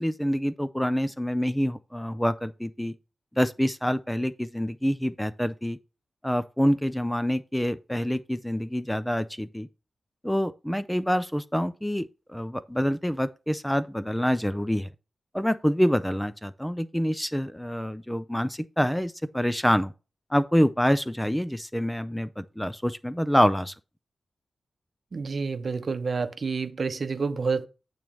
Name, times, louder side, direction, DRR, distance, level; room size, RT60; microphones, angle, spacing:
voice 1, 0.0-2.9 3.4-5.8 6.2-9.7 10.2-14.9 15.3-19.9 20.3-23.7, equal, 5° left, 0.4 m, -26 dB
voice 2, 25.1-27.7, right 4 dB, 55° right, 0.7 m, -29 dB
8.7 x 3.1 x 6.1 m
wide cardioid pair, 100°, 0 cm